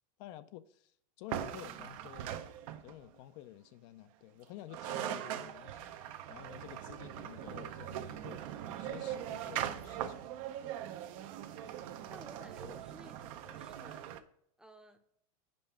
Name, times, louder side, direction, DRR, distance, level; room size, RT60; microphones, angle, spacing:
voice 1, 0.2-2.3 2.8-5.8 6.3-10.3, left 13 dB, 55° left, 0.4 m, -51 dB
sound 1, 1.3-3.1 4.4-4.5 4.7-14.2, right 11 dB, 65° right, 0.7 m, -41 dB
voice 2, 12.1-14.1 14.6-15.0, right 1 dB, 5° right, 0.6 m, -54 dB
5.3 x 4.6 x 5.6 m
supercardioid pair, 125°, 19 cm